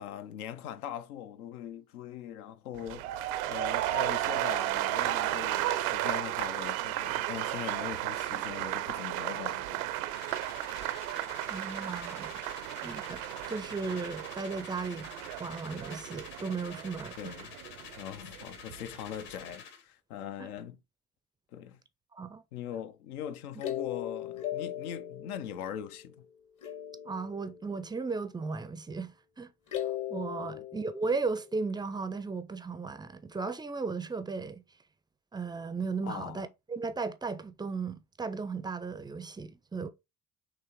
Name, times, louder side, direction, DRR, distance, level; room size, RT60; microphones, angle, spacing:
voice 1, 0.0-9.9 17.2-17.5 18.0-20.8 21.5-21.8 22.5-26.3 30.4-30.6 36.0-36.5, left 10 dB, 75° left, 0.6 m, -41 dB
sound 1, 2.7-18.8 19.1-19.5, right 14 dB, 70° right, 0.5 m, -34 dB
sound 2, 10.1-19.8, left 6 dB, 60° left, 1.5 m, -49 dB
voice 2, 11.5-12.4 12.8-13.2 13.5-15.1 15.4-17.4 20.4-20.5 22.1-22.4 27.1-29.5 30.1-34.6 35.3-39.9, right 4 dB, 10° right, 0.4 m, -36 dB
sound 3, 23.6-26.2 26.6-28.1 29.7-31.6, left 12 dB, 45° left, 0.9 m, -38 dB
5.9 x 3.0 x 2.9 m
figure-of-eight pair, 50°, 45 cm